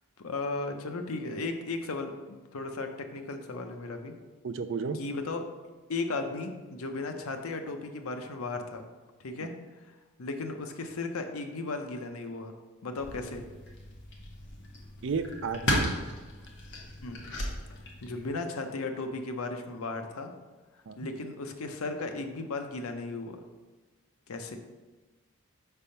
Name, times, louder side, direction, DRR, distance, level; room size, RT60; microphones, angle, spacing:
voice 1, 0.2-4.1 4.9-5.5 5.9-8.9 9.2-9.6 10.2-12.6 12.8-13.4 17.0-17.2 18.0-20.3 21.0-23.4 24.3-24.6, left 3 dB, 75° left, 6 dB, 0.6 m, -35 dB
voice 2, 4.4-5.0 15.0-15.9 20.9-21.0, right 5 dB, 55° right, 9 dB, 0.4 m, -32 dB
sound 1, 13.0-18.3, left 1 dB, 50° left, 1.0 m, -35 dB
5.2 x 3.4 x 5.6 m, 1.2 s
head